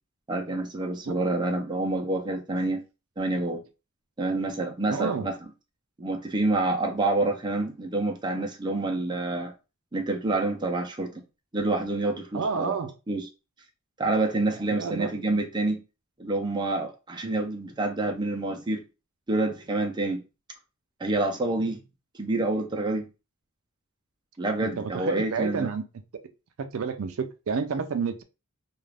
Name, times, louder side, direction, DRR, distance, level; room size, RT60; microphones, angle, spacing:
voice 1, 0.3-2.8 3.2-3.6 4.2-5.3 6.0-9.5 9.9-11.1 11.5-12.7 13.1-13.3 14.0-15.8 16.2-18.8 19.3-20.2 21.0-21.8 22.2-23.0 24.4-25.7, right 2 dB, 20° right, 0.5 m, -27 dB
voice 2, 4.9-5.3 12.3-12.9 14.8-15.1 24.6-25.8 26.6-28.2, right 5 dB, 70° right, 0.4 m, -30 dB
2.4 x 2.4 x 3.3 m
head